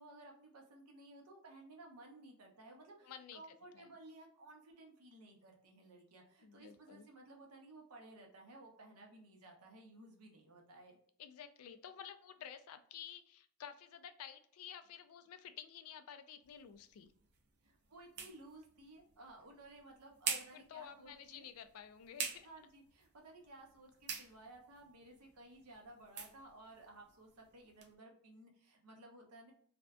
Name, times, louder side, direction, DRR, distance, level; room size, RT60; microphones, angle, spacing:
voice 1, 0.0-11.0 17.6-21.5 22.4-29.5, right 2 dB, 90° right, 2 dB, 0.7 m, -57 dB
voice 2, 3.0-3.4 3.7-3.9 6.4-7.1 11.2-17.1 20.2-22.5, left 8 dB, 75° left, 10 dB, 0.3 m, -52 dB
sound 1, 16.4-27.9, right 6 dB, 45° right, 0.4 m, -48 dB
2.5 x 2.1 x 2.2 m, 0.63 s
head